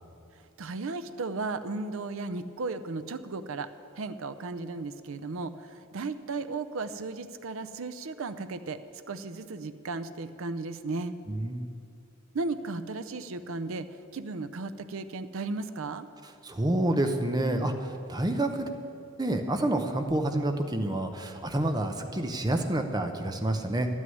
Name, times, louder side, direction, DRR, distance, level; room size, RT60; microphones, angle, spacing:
voice 1, 0.6-3.7 4.0-8.8 9.1-11.1 12.3-13.9 14.1-16.1, right 3 dB, 65° right, 11 dB, 0.5 m, -35 dB
voice 2, 11.3-11.7 16.4-18.7 19.2-23.9, right 1 dB, 20° right, 6 dB, 0.7 m, -28 dB
11.0 x 6.3 x 9.2 m, 2.5 s
head